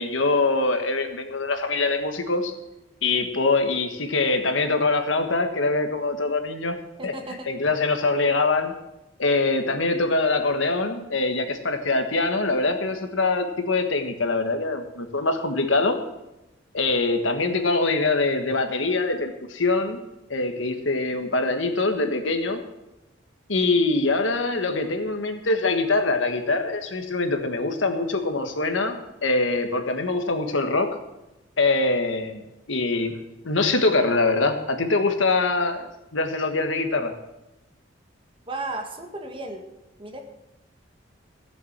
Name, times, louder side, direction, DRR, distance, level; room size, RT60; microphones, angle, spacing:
voice 1, 0.0-2.5 3.0-6.7 7.0-7.1 7.4-8.7 9.2-16.0 16.7-20.0 20.3-22.6 23.5-31.0 31.6-32.4 32.7-33.2 33.4-35.9 36.1-37.1, left 3 dB, 75° left, 6 dB, 1.5 m, -23 dB
voice 2, 7.0-7.5 38.5-39.6 40.0-40.2, right 2 dB, 25° right, 4 dB, 1.6 m, -34 dB
16.5 x 7.2 x 7.5 m, 0.96 s
head